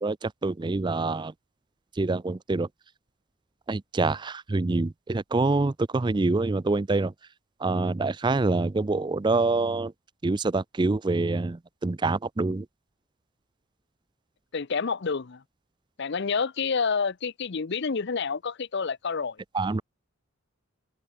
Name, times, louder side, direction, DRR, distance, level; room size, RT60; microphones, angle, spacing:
voice 1, 0.0-1.3 2.0-2.7 3.7-7.1 7.6-9.9 10.2-12.7 19.5-19.8, right 3 dB, 20° right, 0.4 m, -26 dB
voice 2, 14.5-15.4 16.0-19.4, left 5 dB, 50° left, 0.6 m, -28 dB
head